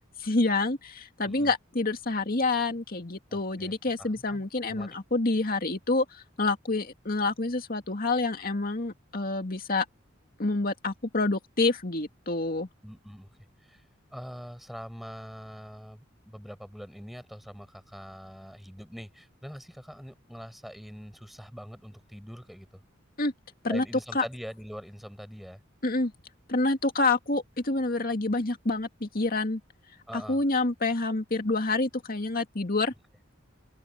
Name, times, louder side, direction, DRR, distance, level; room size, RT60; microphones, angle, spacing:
voice 1, 0.2-9.9 10.4-12.7 23.2-23.3 23.6-23.8 24.1-24.2 25.8-26.1 26.5-29.6 30.1-32.9, left 3 dB, 45° left, 2.3 m, -27 dB
voice 2, 3.3-4.9 12.8-13.3 13.6-13.9 14.1-22.8 23.7-25.6 30.1-30.4, equal, ahead, 6.6 m, -43 dB
open air
head